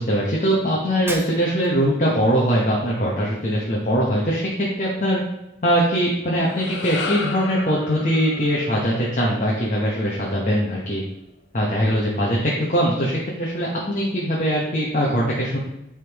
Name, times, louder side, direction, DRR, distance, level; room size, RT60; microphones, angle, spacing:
voice 1, 0.0-5.2 5.6-11.0 11.5-15.6, equal, 40° left, -4 dB, 1.0 m, -21 dB
Shatter, 1.1-1.9, right 2 dB, 15° right, 0.3 m, -34 dB
sound 1, 6.2-10.7, left 3 dB, 85° left, 0.7 m, -34 dB
9.7 x 3.7 x 3.0 m, 0.88 s
head